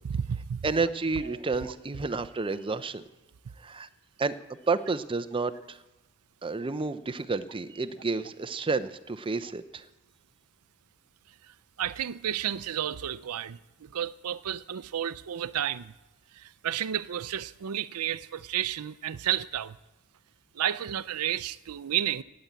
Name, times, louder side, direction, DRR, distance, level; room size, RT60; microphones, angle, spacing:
voice 1, 0.0-0.7 1.7-1.8 11.5-15.9 16.3-19.8 20.5-22.2, right 10 dB, 75° right, 0.5 m, -32 dB
voice 2, 0.6-3.0 3.6-3.9 4.2-4.4 4.7-5.8 6.4-9.8, right 4 dB, 25° right, 0.5 m, -30 dB
18.0 x 8.6 x 8.1 m
head